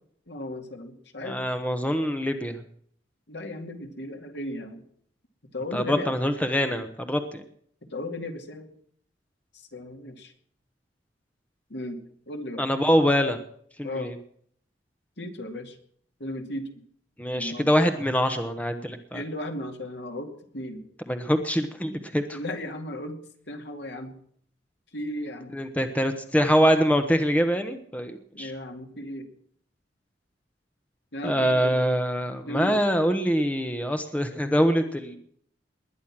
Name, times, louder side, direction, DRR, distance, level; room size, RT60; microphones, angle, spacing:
voice 1, 0.3-1.4 3.3-4.8 5.5-6.1 7.9-8.7 9.5-10.3 11.7-12.6 13.8-14.1 15.2-15.8 16.2-16.8 17.3-17.7 19.1-20.8 22.3-23.2 23.5-24.1 24.9-25.6 28.3-29.3 31.1-31.8 32.5-32.9, left 1 dB, 65° left, 5 dB, 2.5 m, -35 dB
voice 2, 1.2-2.6 5.7-7.4 12.6-13.4 13.8-14.2 17.2-19.2 21.1-22.4 25.5-28.5 31.2-35.2, equal, 10° left, 7 dB, 1.1 m, -24 dB
20.5 x 10.5 x 6.1 m, 0.62 s
head